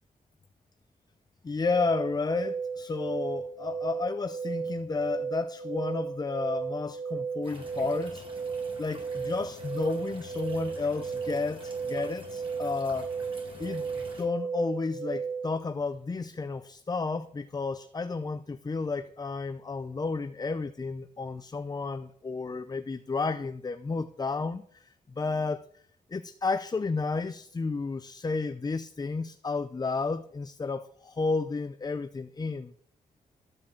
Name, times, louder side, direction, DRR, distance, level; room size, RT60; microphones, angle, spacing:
voice 1, 1.4-8.2 8.8-13.1 13.6-25.7 26.1-32.7, left 4 dB, 25° left, 0.5 m, -32 dB
sound 1, 1.6-15.5, right 5 dB, 90° right, 2.0 m, -35 dB
sound 2, 7.4-14.3, right 1 dB, 35° right, 4.7 m, -48 dB
13.5 x 5.4 x 7.0 m
cardioid pair, 100°, 15 cm